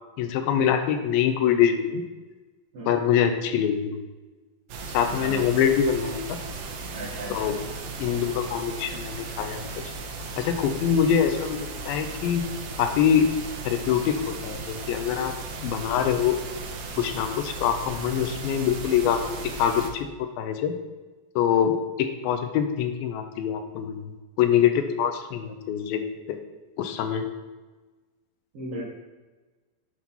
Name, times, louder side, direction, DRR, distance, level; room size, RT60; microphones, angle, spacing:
voice 1, 0.2-2.0 2.9-4.0 4.9-6.4 7.3-7.6 8.0-9.9 10.4-12.5 12.8-13.3 13.7-15.3 15.6-16.4 17.0-20.8 21.4-26.0 26.3-26.4 26.8-27.3, left 8 dB, 85° left, 7 dB, 2.4 m, -24 dB
sound 1, 4.7-19.9, right 3 dB, 85° right, 2.7 m, -36 dB
voice 2, 6.9-7.6 28.5-28.8, right 1 dB, 65° right, -8 dB, 1.6 m, -36 dB
8.1 x 2.9 x 5.4 m, 1.2 s
omnidirectional pair, 4.2 m